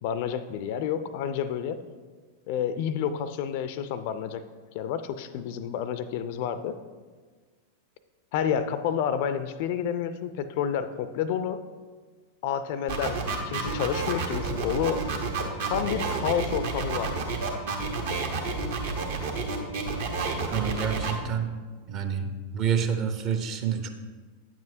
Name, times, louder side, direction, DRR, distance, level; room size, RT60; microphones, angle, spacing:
voice 1, 0.0-1.8 2.5-4.4 4.7-6.8 8.3-11.6 12.4-15.0 15.6-17.3, left 8 dB, 50° left, 12 dB, 0.4 m, -29 dB
sound 1, 12.9-21.1, right 4 dB, 60° right, 1.0 m, -30 dB
voice 2, 20.5-21.5 21.9-23.9, right 7 dB, 35° right, 7 dB, 0.7 m, -28 dB
9.2 x 7.2 x 2.7 m, 1.4 s
figure-of-eight pair, 90°, 0 cm